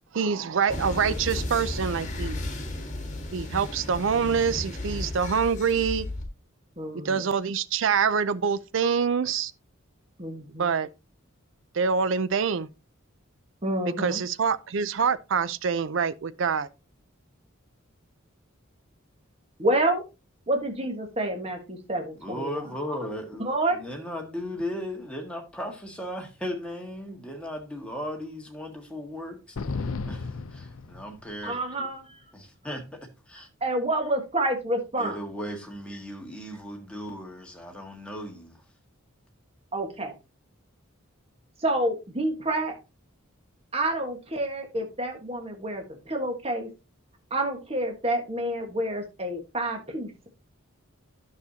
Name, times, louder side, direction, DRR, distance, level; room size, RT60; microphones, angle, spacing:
voice 1, 0.1-2.4 3.3-6.1 7.0-9.5 10.6-10.9 11.7-12.7 14.0-16.7, right 6 dB, 65° right, 0.5 m, -25 dB
sound 1, 0.7-6.2, left 1 dB, 35° left, 1.8 m, -34 dB
voice 2, 6.8-7.2 10.2-10.7 13.6-14.2 19.6-20.0 20.5-22.6 23.4-23.8 31.4-32.1 33.6-35.2 39.7-40.1 41.6-42.8 43.7-46.7 47.3-50.3, right 1 dB, 30° right, 1.5 m, -28 dB
voice 3, 22.2-31.9 32.3-33.5 35.0-38.6, equal, 5° left, 1.7 m, -37 dB
sound 2, 29.6-31.5, left 4 dB, 85° left, 0.6 m, -34 dB
10.5 x 6.5 x 2.8 m
head